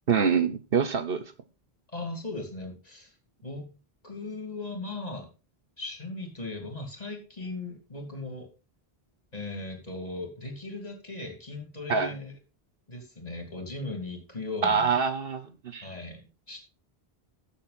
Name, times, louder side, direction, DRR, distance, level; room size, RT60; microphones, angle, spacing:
voice 1, 0.1-1.2 11.9-12.1 14.6-15.9, right 6 dB, 65° right, 1.1 m, -25 dB
voice 2, 1.9-3.1 3.4-3.7 4.0-5.3 5.8-8.5 9.3-12.3 12.9-14.9 15.8-16.6, left 2 dB, 40° left, 3.0 m, -38 dB
13.0 x 7.1 x 4.2 m
omnidirectional pair, 1.1 m